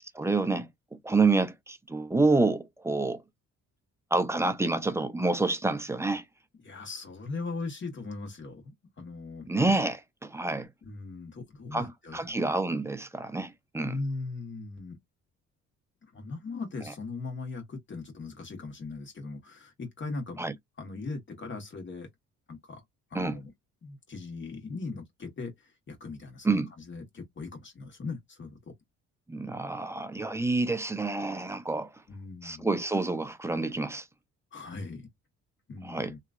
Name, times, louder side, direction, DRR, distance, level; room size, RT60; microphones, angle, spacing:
voice 1, 0.1-3.2 4.1-6.2 9.5-10.7 11.7-14.0 20.4-20.5 23.1-23.4 26.4-26.7 29.3-31.9 32.4-34.1 35.8-36.1, right 3 dB, 10° right, 0.5 m, -28 dB
voice 2, 6.6-9.5 10.8-12.4 13.8-15.0 16.0-20.4 20.8-22.1 22.5-22.8 23.1-23.5 23.8-28.7 32.1-32.7 34.5-35.1 35.7-36.2, left 3 dB, 40° left, 1.4 m, -39 dB
2.9 x 2.4 x 2.4 m
cardioid pair, 90°, 30 cm